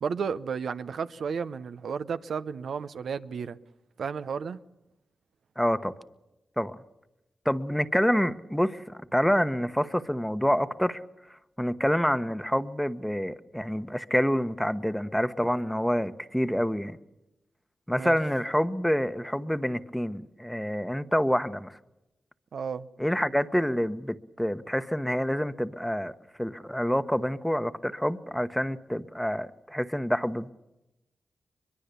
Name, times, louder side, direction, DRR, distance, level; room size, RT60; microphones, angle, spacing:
voice 1, 0.0-3.6 4.0-4.6 17.9-18.2 22.5-22.9, right 6 dB, 75° right, 0.7 m, -33 dB
voice 2, 5.6-5.9 6.6-6.8 7.4-8.8 9.1-11.0 11.6-17.0 17.9-21.8 23.0-30.5, equal, 5° left, 1.1 m, -27 dB
22.5 x 22.5 x 6.9 m
cardioid pair, 50°, 0 cm